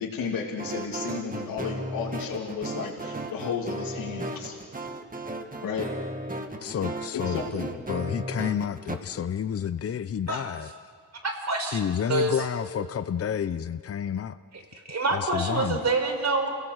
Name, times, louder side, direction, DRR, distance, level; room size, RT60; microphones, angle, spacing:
voice 1, 0.0-4.6 5.6-5.8 7.1-7.7, left 5 dB, 85° left, 2.7 m, -33 dB
sound 1, 0.6-8.9, right 1 dB, 25° right, 2.2 m, -35 dB
voice 2, 6.6-10.7 11.7-14.4 15.1-15.8, left 8 dB, 45° left, 0.7 m, -30 dB
voice 3, 11.2-11.8 12.1-12.3 14.7-16.5, right 3 dB, 50° right, 4.7 m, -26 dB
28.5 x 17.0 x 8.0 m
cardioid pair, 75°, 33 cm